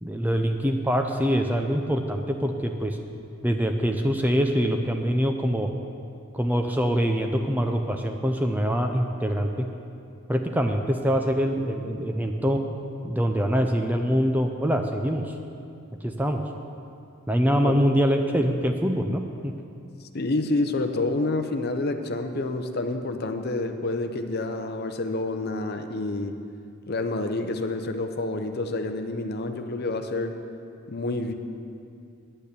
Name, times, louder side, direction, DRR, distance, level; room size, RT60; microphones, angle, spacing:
voice 1, 0.0-3.0 3.4-5.7 6.3-9.6 10.3-12.6 13.0-15.3 16.0-16.4 17.3-19.5, equal, 10° right, 4 dB, 0.5 m, -24 dB
voice 2, 20.1-26.3 26.9-30.3 30.9-31.3, left 2 dB, 45° left, 7 dB, 0.6 m, -28 dB
10.0 x 9.0 x 6.9 m, 2.5 s
head